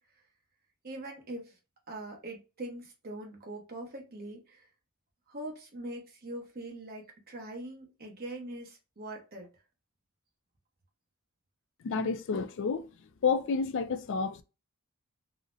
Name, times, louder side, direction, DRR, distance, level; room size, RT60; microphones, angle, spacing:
voice 1, 0.8-1.6 1.9-4.7 5.3-9.5, right 1 dB, 45° right, 0.9 m, -42 dB
voice 2, 11.8-12.9 13.2-14.4, left 5 dB, 55° left, 0.4 m, -30 dB
3.8 x 2.1 x 2.6 m
head